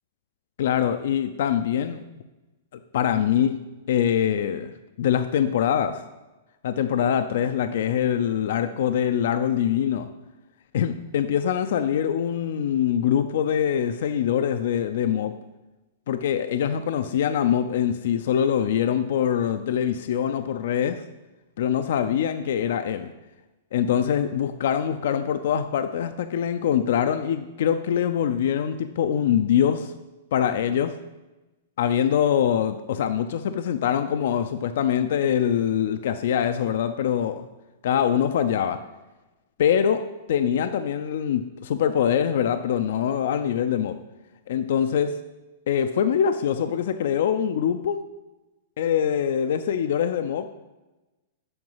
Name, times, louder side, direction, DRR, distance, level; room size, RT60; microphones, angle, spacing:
voice 1, 0.6-2.2 2.9-3.6 3.9-4.7 5.0-6.0 6.6-10.1 10.7-15.3 16.1-21.0 21.6-23.1 23.7-29.9 30.3-30.9 31.8-37.5 37.8-38.8 39.6-40.0 40.3-44.0 44.5-45.1 45.7-48.0 48.8-50.5, left 9 dB, 70° left, 9 dB, 0.4 m, -23 dB
7.8 x 5.1 x 5.5 m, 1.1 s
hypercardioid pair, 140°, 0 cm